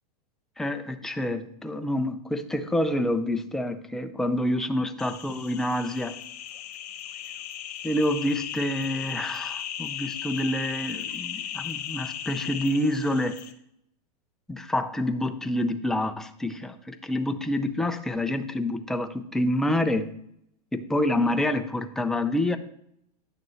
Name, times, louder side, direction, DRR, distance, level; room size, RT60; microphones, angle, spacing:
voice 1, 0.6-6.2 7.8-13.4 14.5-20.1 20.7-22.6, left 1 dB, ahead, 7 dB, 0.4 m, -27 dB
sound 1, 5.0-13.5, left 10 dB, 70° left, 1.0 m, -36 dB
9.8 x 6.6 x 3.1 m, 0.73 s
hypercardioid pair, 135°, 21 cm